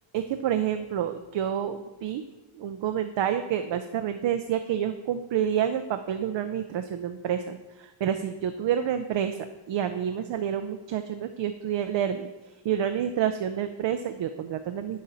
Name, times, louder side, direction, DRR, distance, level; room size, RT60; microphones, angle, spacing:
voice 1, 0.1-2.2 2.6-9.4 9.7-12.3 12.6-15.0, right 9 dB, 65° right, 8 dB, 0.5 m, -28 dB
10.5 x 4.2 x 4.0 m, 1.1 s
wide cardioid pair, 105°, 49 cm